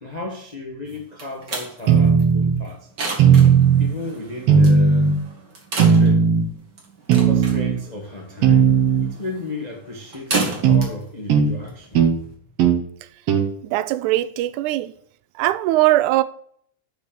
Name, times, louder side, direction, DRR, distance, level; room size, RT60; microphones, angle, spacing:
voice 1, 0.0-2.9 3.8-5.1 5.7-6.2 7.1-8.7 9.0-12.3, left 2 dB, 50° left, 0.4 m, -34 dB
sound 1, 0.9-12.3, right 3 dB, 40° right, 2.2 m, -33 dB
sound 2, 1.9-2.6 3.2-3.9 4.5-5.2 5.8-6.5 7.1-7.8 8.4-9.1 10.6-10.9 11.3-11.5 11.9-12.2 12.6-12.8 13.3-13.5, right 6 dB, 65° right, 1.8 m, -15 dB
voice 2, 13.6-14.9 15.4-16.2, right 16 dB, 90° right, 2.0 m, -20 dB
6.1 x 5.9 x 6.8 m
omnidirectional pair, 3.4 m